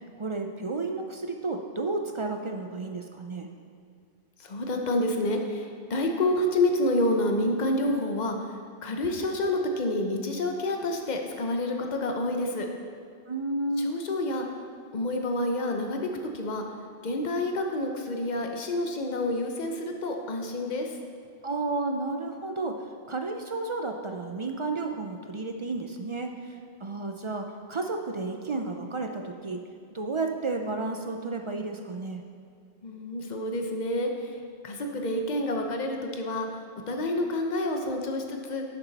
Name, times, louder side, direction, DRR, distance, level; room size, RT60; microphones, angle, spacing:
voice 1, 0.2-3.5 13.3-13.9 21.4-22.8 23.1-26.5 26.8-32.2, right 3 dB, 45° right, 4 dB, 0.4 m, -32 dB
voice 2, 4.4-8.4 8.8-12.7 13.8-14.4 14.9-16.6 17.0-20.9 32.8-34.3 34.6-36.6 36.9-38.6, left 1 dB, 45° left, 3 dB, 1.0 m, -28 dB
11.0 x 7.0 x 4.1 m, 2.2 s
omnidirectional pair, 1.2 m